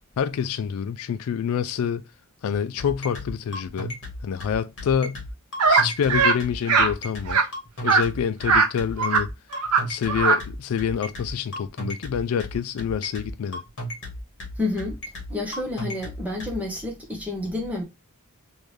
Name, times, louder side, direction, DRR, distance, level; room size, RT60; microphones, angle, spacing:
voice 1, 0.2-2.0 2.4-5.2 5.7-7.4 7.8-9.3 9.8-13.6, left 7 dB, 70° left, 0.3 m, -27 dB
sound 1, 2.8-16.5, left 1 dB, 55° left, 1.4 m, -35 dB
sound 2, 5.6-5.8 6.1-6.4 6.7-6.9 7.3-7.4 7.9-8.0 8.4-8.7 9.0-9.2 9.5-9.8 10.1-10.4, right 4 dB, 90° right, 0.7 m, -19 dB
voice 2, 14.6-15.0 15.3-17.8, left 2 dB, 5° right, 1.1 m, -29 dB
3.5 x 2.6 x 3.1 m
head